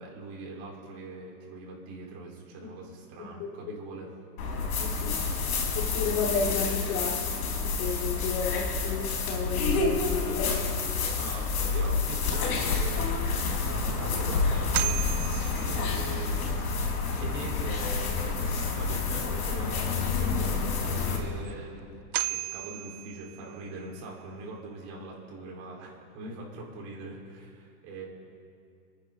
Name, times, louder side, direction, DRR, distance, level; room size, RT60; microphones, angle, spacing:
voice 1, 0.0-4.1 11.2-13.2 13.6-15.0 15.6-16.6 17.2-21.9 22.3-28.1, right 2 dB, 50° right, -3 dB, 4.9 m, -41 dB
sound 1, 4.4-21.2, left 4 dB, 80° left, 4.0 m, -29 dB
voice 2, 4.8-5.2 5.7-10.7, left 5 dB, 50° left, -1 dB, 3.3 m, -32 dB
sound 2, 13.3-13.4 13.9-14.0 14.7-16.4 21.4-21.5 22.1-23.8, right 17 dB, 35° right, 0.4 m, -35 dB
27.0 x 10.0 x 4.1 m, 2.4 s
hypercardioid pair, 115°, 45 cm